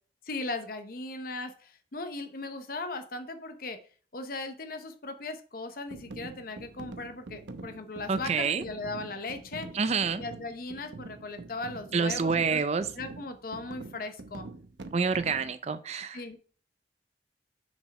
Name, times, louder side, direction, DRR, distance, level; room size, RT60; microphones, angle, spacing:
voice 1, 0.2-3.8 4.1-9.7 10.2-12.6 12.9-14.5 16.1-16.4, left 3 dB, 55° left, 8 dB, 0.8 m, -38 dB
sound 1, 5.9-15.6, right 3 dB, 85° right, 0.8 m, -45 dB
voice 2, 8.1-8.6 9.7-10.2 11.9-12.9 14.9-16.2, right 5 dB, 35° right, 12 dB, 0.4 m, -27 dB
6.3 x 5.2 x 5.3 m, 0.42 s
head